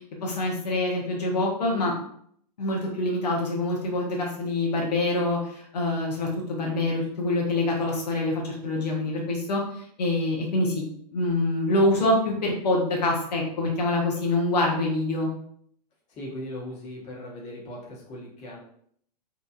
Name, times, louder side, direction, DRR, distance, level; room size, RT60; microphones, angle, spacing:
voice 1, 0.2-1.9 2.6-10.8 11.1-15.3, left 2 dB, 80° left, -1 dB, 0.7 m, -25 dB
voice 2, 16.1-18.6, left 1 dB, 35° left, -3 dB, 1.0 m, -38 dB
2.8 x 2.3 x 2.3 m, 0.65 s
hypercardioid pair, 115°, 21 cm